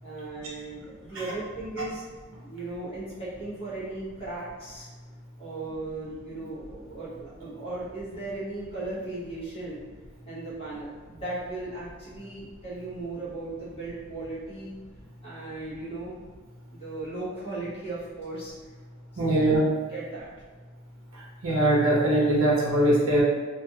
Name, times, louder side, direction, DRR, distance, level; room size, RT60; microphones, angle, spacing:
voice 1, 0.0-2.0 2.4-4.9 5.4-9.8 10.3-14.7 15.2-16.1 16.7-18.5 19.2-19.4 19.9-20.3, right 2 dB, 25° left, -9 dB, 0.9 m, -37 dB
voice 2, 19.2-19.6 21.4-23.2, right 1 dB, 70° right, -5 dB, 0.7 m, -21 dB
2.5 x 2.3 x 2.7 m, 1.4 s
head